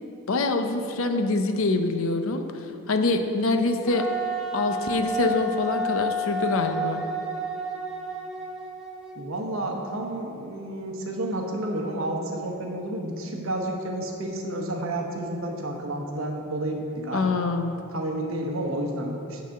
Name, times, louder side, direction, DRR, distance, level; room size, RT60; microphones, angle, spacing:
voice 1, 0.3-2.4 2.9-4.0 4.5-7.0 17.1-17.8, left 3 dB, 70° left, 6 dB, 0.6 m, -25 dB
Wind instrument woodwind instrument, 3.9-9.3, right 1 dB, ahead, 0.8 m, -31 dB
voice 2, 9.1-17.5 17.9-19.4, right 1 dB, 70° right, 1 dB, 1.1 m, -31 dB
9.3 x 4.1 x 6.5 m, 2.7 s
head